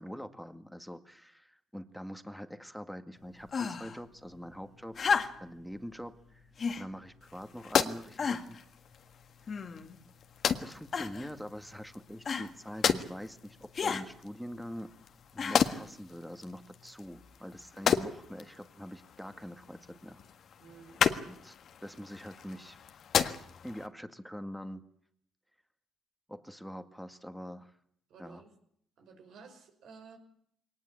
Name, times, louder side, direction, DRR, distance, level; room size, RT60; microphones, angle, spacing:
voice 1, 0.0-5.0 5.4-6.5 6.8-8.6 9.5-9.6 10.6-14.9 15.3-20.2 21.3-21.5 21.8-22.8 23.6-24.8 26.3-27.7 28.2-28.4, equal, ahead, 8 dB, 1.9 m, -44 dB
sound 1, 3.5-4.0 4.9-5.6 6.6-6.9 7.6-7.7 8.2-8.6 9.5-10.0 10.9-11.3 12.3-12.5 13.7-14.1 15.4-15.8 16.9-17.0, left 5 dB, 45° left, 2.0 m, -33 dB
sound 2, 7.2-23.9, left 8 dB, 65° left, 1.6 m, -35 dB
voice 2, 20.6-21.0 28.1-28.5 29.0-30.2, right 5 dB, 75° right, 5 dB, 5.5 m, -53 dB
22.5 x 19.0 x 8.7 m, 0.67 s
cardioid pair, 90°, 0 cm